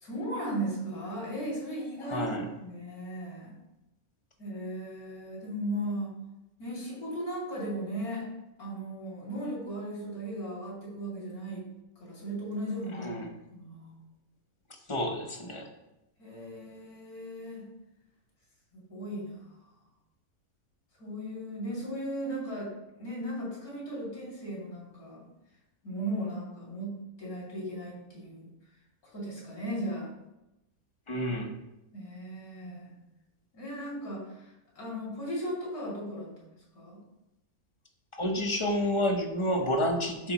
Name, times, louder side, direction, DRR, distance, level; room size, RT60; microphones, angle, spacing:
voice 1, 0.0-3.5 4.4-6.1 6.6-8.2 8.6-11.7 12.0-14.0 16.2-17.7 18.7-19.3 21.0-25.2 25.8-28.5 29.1-30.1 31.9-32.9 33.5-34.5 34.8-36.5 36.7-37.0, right 1 dB, 85° left, -5 dB, 3.2 m, -37 dB
voice 2, 2.0-2.4 13.0-13.3 14.9-15.7 31.1-31.5 38.2-40.3, equal, 25° left, 2 dB, 0.7 m, -29 dB
12.0 x 4.7 x 3.0 m, 0.94 s
omnidirectional pair, 1.5 m